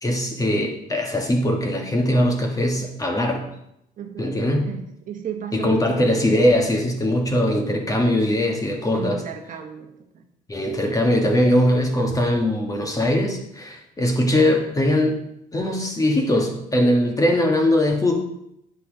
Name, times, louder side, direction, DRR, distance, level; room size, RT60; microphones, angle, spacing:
voice 1, 0.0-3.5 4.2-4.7 5.5-9.2 10.5-15.2 15.5-18.1, left 1 dB, 20° left, 2 dB, 1.5 m, -21 dB
voice 2, 4.0-4.3 4.6-6.1 8.9-10.2, right 8 dB, 50° right, 4 dB, 1.2 m, -34 dB
8.6 x 5.5 x 5.1 m, 0.79 s
cardioid pair, 110°, 17 cm